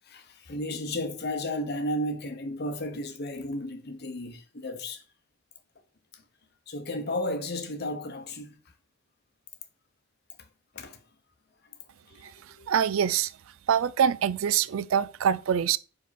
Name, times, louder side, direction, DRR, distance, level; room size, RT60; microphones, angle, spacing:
voice 1, 0.1-5.0 6.7-8.6 10.7-11.0 12.1-12.7, left 1 dB, 50° left, 0.9 m, -33 dB
voice 2, 12.7-13.3 13.7-15.8, right 8 dB, 75° right, 0.4 m, -24 dB
5.2 x 5.2 x 4.1 m
head